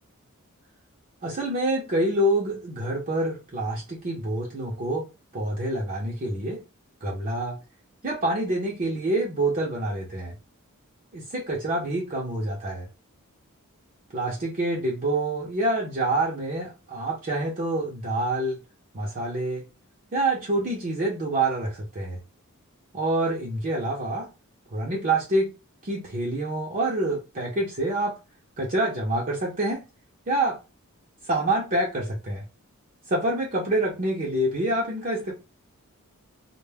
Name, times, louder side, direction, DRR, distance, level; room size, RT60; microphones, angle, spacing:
voice 1, 1.2-5.1 5.3-6.6 7.0-7.6 8.0-10.3 11.1-12.9 14.1-18.6 18.9-19.6 20.1-22.2 22.9-24.3 24.7-25.5 25.8-28.1 28.6-29.8 30.3-30.6 31.2-32.4 33.1-35.3, right 1 dB, 40° right, -3 dB, 0.6 m, -27 dB
2.2 x 2.1 x 3.3 m, 0.28 s
head